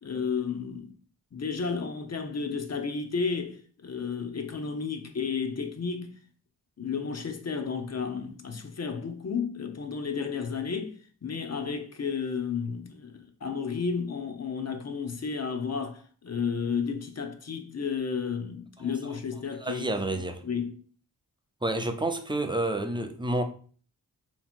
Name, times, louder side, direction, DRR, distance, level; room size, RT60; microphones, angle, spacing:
voice 1, 0.0-0.9 1.3-6.2 6.8-19.9 20.4-20.8, left 5 dB, 45° left, 0.7 m, -32 dB
voice 2, 19.6-20.4 21.6-23.4, right 1 dB, 15° right, 0.5 m, -29 dB
3.4 x 3.0 x 4.3 m
wide cardioid pair, 75°, 37 cm